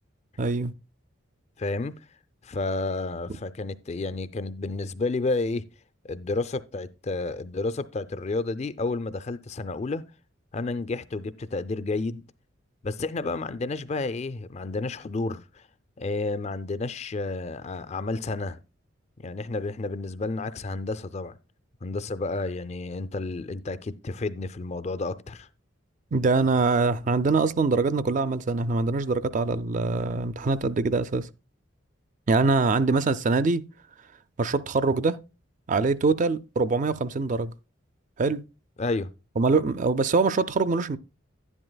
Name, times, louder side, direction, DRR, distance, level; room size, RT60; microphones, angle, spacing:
voice 1, 0.4-0.7 26.1-31.3 32.3-33.6 34.4-35.2 35.7-37.5 38.2-38.4 39.4-41.0, right 3 dB, 40° right, 0.4 m, -23 dB
voice 2, 1.6-1.9 2.4-5.6 6.0-10.0 10.5-12.2 12.8-15.6 16.0-18.6 19.2-21.4 21.8-25.5 38.8-39.1, left 3 dB, 35° left, 0.4 m, -31 dB
11.0 x 10.0 x 2.2 m
head